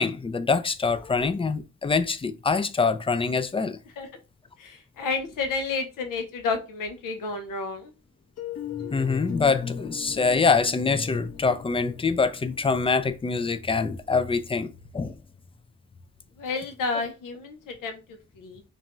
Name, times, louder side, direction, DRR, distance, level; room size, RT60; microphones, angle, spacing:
voice 1, 0.0-3.8 8.9-14.7 14.9-15.1, left 4 dB, 20° left, 0.3 m, -24 dB
voice 2, 4.6-7.9 16.4-18.6, left 4 dB, 85° left, 0.6 m, -31 dB
sound 1, 8.4-14.2, left 7 dB, 55° left, 0.8 m, -40 dB
2.6 x 2.1 x 3.0 m
cardioid pair, 55°, 31 cm